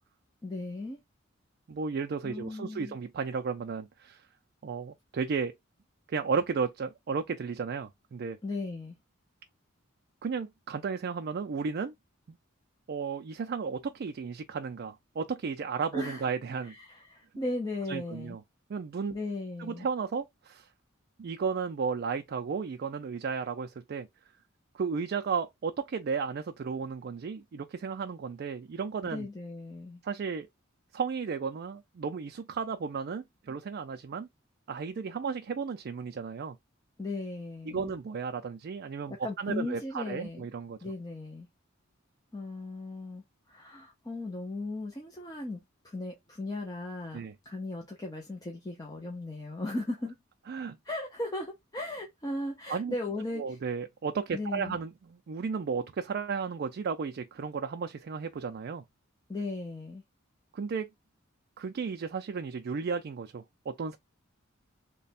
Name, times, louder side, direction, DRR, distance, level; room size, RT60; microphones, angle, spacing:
voice 1, 0.4-1.0 2.2-3.0 8.4-9.0 15.9-16.3 16.6-18.4 19.1-19.9 29.0-30.0 37.0-37.9 39.1-40.5 40.8-41.5 42.3-45.6 45.8-50.2 50.8-53.6 54.3-54.8 59.3-60.0, left 2 dB, 20° left, 0.6 m, -37 dB
voice 2, 1.7-4.3 4.6-5.5 6.1-8.4 10.2-11.9 12.3-12.4 12.9-16.7 17.9-18.4 18.7-19.2 19.6-20.7 21.2-24.1 24.7-29.3 30.0-30.5 30.9-34.3 34.7-36.6 37.7-40.8 47.1-47.3 50.5-50.8 52.7-52.9 53.3-58.8 60.5-60.9 61.6-64.0, right 5 dB, 50° right, 0.3 m, -34 dB
3.2 x 2.2 x 4.0 m
head